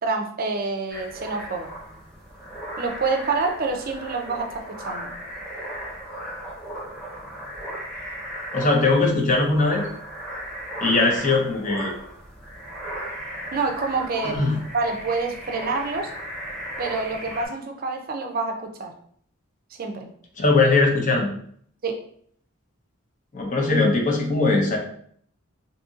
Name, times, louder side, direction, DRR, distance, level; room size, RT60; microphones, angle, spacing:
voice 1, 0.0-1.7 2.8-5.1 13.5-14.4 14.7-16.1 16.8-18.9 19.8-20.1 21.8-22.0, right 3 dB, 40° right, 3 dB, 0.5 m, -27 dB
sound 1, 0.9-17.5, equal, 5° left, 1.0 m, -36 dB
voice 2, 8.5-9.9 10.8-12.0 14.2-14.6 20.4-21.3 23.3-24.8, left 3 dB, 35° left, 0 dB, 0.7 m, -20 dB
2.7 x 2.6 x 3.7 m, 0.62 s
head